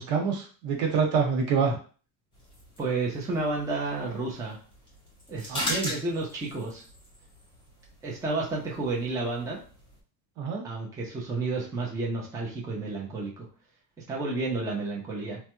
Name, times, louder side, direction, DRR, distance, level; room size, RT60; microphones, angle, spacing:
voice 1, 0.0-1.8 5.5-5.9 10.4-10.6, right 5 dB, 80° right, 1 dB, 1.2 m, -26 dB
sound 1, 2.3-10.0, equal, 10° left, 0.9 m, -40 dB
voice 2, 2.8-4.6 5.3-6.8 8.0-9.6 10.6-13.5 14.1-15.4, right 3 dB, 5° right, -3 dB, 0.4 m, -31 dB
3.3 x 2.2 x 2.9 m, 0.39 s
cardioid pair, 145°, 48 cm